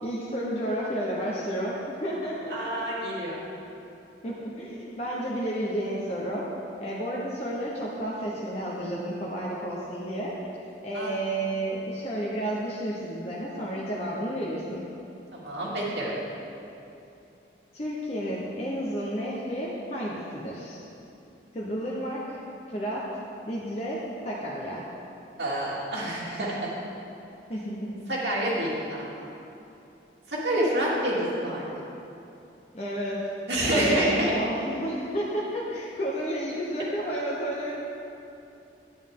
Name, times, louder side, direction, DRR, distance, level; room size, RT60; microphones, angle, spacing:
voice 1, 0.0-2.5 4.2-6.5 6.8-10.4 10.8-14.9 17.7-20.8 21.5-22.4 22.7-23.1 23.4-24.8 27.5-28.0 32.7-33.3 33.6-37.7, equal, 35° left, -5 dB, 0.9 m, -31 dB
voice 2, 2.5-3.4 10.9-11.1 15.3-16.1 25.4-26.7 28.1-29.2 30.3-31.7 33.5-34.3, right 1 dB, 80° right, -6 dB, 2.3 m, -27 dB
10.5 x 9.5 x 3.8 m, 2.8 s
head